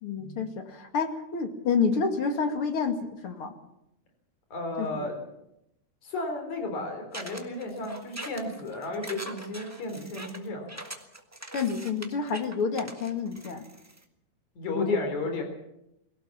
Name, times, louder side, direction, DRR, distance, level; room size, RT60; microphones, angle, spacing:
voice 1, 0.0-3.5 4.8-5.1 11.5-13.6 14.7-15.0, left 5 dB, 45° left, 6 dB, 2.8 m, -28 dB
voice 2, 4.5-5.2 6.0-10.7 14.6-15.4, left 2 dB, 65° left, 4 dB, 5.3 m, -33 dB
sound 1, 7.1-14.0, right 1 dB, 10° right, 1.0 m, -42 dB
22.5 x 17.5 x 7.3 m, 0.83 s
omnidirectional pair, 3.5 m